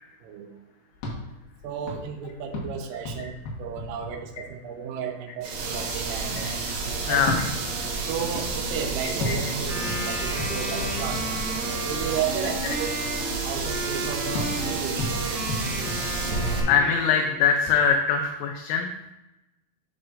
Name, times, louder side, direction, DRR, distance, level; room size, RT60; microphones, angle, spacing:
sound 1, 0.9-4.8 7.1-12.0 14.3-16.8, left 2 dB, 65° left, 3.1 m, -35 dB
voice 1, 1.6-6.5 7.1-7.3 8.1-11.2 11.9-12.9 13.4-15.2, right 7 dB, 90° right, 3 dB, 3.5 m, -33 dB
sound 2, 5.4-16.6, right 4 dB, 70° right, 3.3 m, -30 dB
voice 2, 7.1-7.5 9.0-9.4 11.3-11.4 12.4-12.7 16.7-18.9, left 6 dB, 80° left, 3 dB, 2.8 m, -23 dB
Wind instrument woodwind instrument, 9.6-17.6, right 1 dB, 25° right, 2.5 m, -34 dB
12.0 x 5.5 x 2.5 m, 0.96 s
omnidirectional pair, 5.7 m